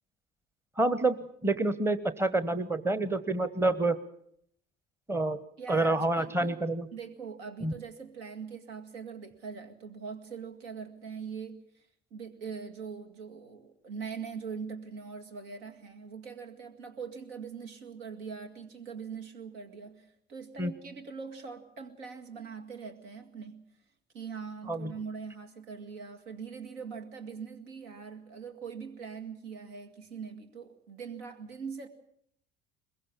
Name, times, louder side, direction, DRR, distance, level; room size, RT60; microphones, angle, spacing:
voice 1, 0.8-4.0 5.1-5.4 5.7-6.8 7.6-7.7 20.6-20.7 24.7-24.9, right 2 dB, 10° right, 14 dB, 1.1 m, -28 dB
voice 2, 5.6-6.7 6.9-11.9 12.1-23.6 24.1-31.9, right 6 dB, 65° right, 6 dB, 2.2 m, -42 dB
22.0 x 22.0 x 7.2 m, 0.71 s
figure-of-eight pair, 55°, 33 cm